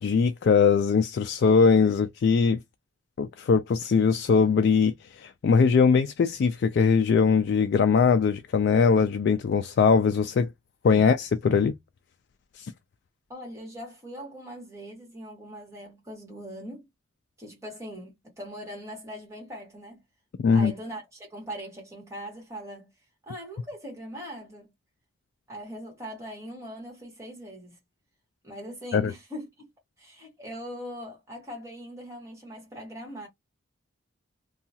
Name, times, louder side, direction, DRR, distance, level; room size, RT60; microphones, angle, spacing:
voice 1, 0.0-2.6 3.2-10.5 10.8-11.7 12.6-12.7 20.4-20.7 28.9-29.1, left 5 dB, 55° left, 0.3 m, -21 dB
voice 2, 13.3-16.9 17.4-20.0 20.5-22.9 23.2-24.7 25.5-27.8 28.4-29.5 30.0-33.3, equal, 15° right, 1.5 m, -41 dB
2.7 x 2.3 x 2.7 m
head